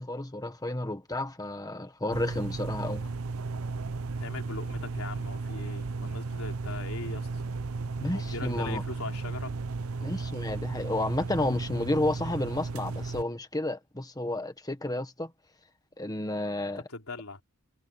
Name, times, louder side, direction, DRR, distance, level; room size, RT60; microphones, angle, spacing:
voice 1, 0.0-3.1 8.0-8.8 10.0-15.3 16.0-16.8, left 1 dB, 20° left, 1.5 m, -31 dB
sound 1, 2.1-13.2, right 3 dB, 80° right, 0.7 m, -34 dB
voice 2, 4.2-7.3 8.1-9.5 16.8-17.4, left 3 dB, 90° left, 3.6 m, -40 dB
head